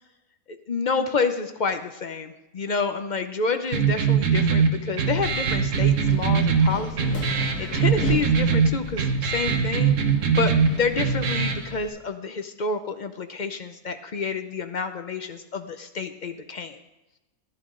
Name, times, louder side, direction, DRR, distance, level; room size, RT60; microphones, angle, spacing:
voice 1, 0.7-10.0 10.4-16.8, left 4 dB, 50° left, 8 dB, 0.5 m, -29 dB
sound 1, 3.7-11.7, right 6 dB, 60° right, 1.3 m, -22 dB
Wind, 5.0-11.9, left 5 dB, 85° left, 2.0 m, -37 dB
14.5 x 10.5 x 3.8 m, 0.97 s
omnidirectional pair, 1.6 m